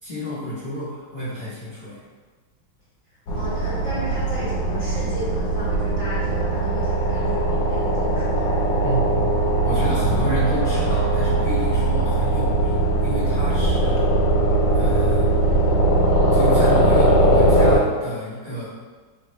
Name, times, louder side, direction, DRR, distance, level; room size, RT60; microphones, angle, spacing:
voice 1, 0.0-2.0 8.8-9.4 9.6-14.1 14.7-15.3 16.3-18.7, equal, 40° left, -13 dB, 0.7 m, -29 dB
sound 1, 3.3-17.8, right 1 dB, 70° left, 1.2 m, -20 dB
voice 2, 3.3-8.5, equal, 25° right, -13 dB, 1.2 m, -34 dB
3.7 x 2.1 x 2.9 m, 1.4 s
omnidirectional pair, 2.3 m